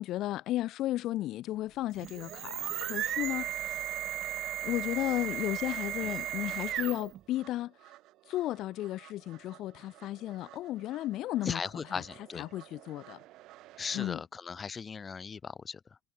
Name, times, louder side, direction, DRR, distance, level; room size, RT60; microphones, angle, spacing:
voice 1, 0.0-3.9 4.6-7.9 8.3-11.6 11.9-12.0 12.4-13.2 13.9-14.2, left 15 dB, 75° left, 0.4 m, -34 dB
sound 1, 1.9-7.2, right 12 dB, 65° right, 1.3 m, -35 dB
Psycho Metallic Riser FX, 4.5-14.1, right 16 dB, 80° right, 2.3 m, -56 dB
voice 2, 11.4-12.4 13.8-16.0, left 5 dB, 30° left, 1.2 m, -38 dB
cardioid pair, 125°, 0 cm